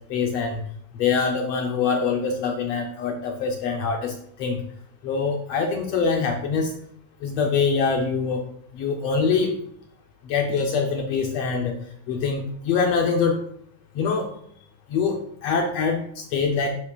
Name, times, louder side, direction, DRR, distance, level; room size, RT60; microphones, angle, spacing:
voice 1, 0.1-0.6 0.9-4.6 5.0-6.7 7.2-8.4 8.7-9.5 10.2-11.8 12.1-13.4 13.9-14.3 14.9-16.7, left 5 dB, 75° left, 2 dB, 1.4 m, -24 dB
9.5 x 7.0 x 2.3 m, 0.67 s
omnidirectional pair, 3.6 m